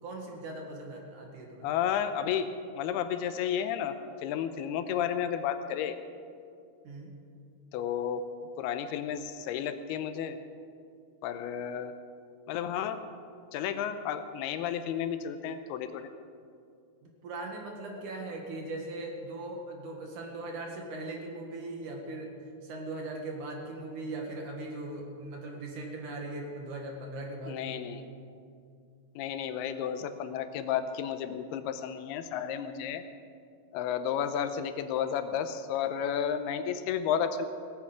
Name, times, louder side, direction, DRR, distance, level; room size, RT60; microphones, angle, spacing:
voice 1, 0.0-1.7 6.8-7.1 17.0-22.3 22.6-28.1, right 2 dB, 60° right, 1 dB, 2.8 m, -39 dB
voice 2, 1.6-2.5 2.8-4.0 4.2-6.0 7.7-8.2 8.6-10.4 11.2-11.9 12.5-13.0 13.5-16.1 27.5-28.0 29.2-33.0 33.7-37.5, left 8 dB, 85° left, 9 dB, 2.6 m, -32 dB
18.0 x 8.5 x 7.9 m, 2.4 s
omnidirectional pair, 4.6 m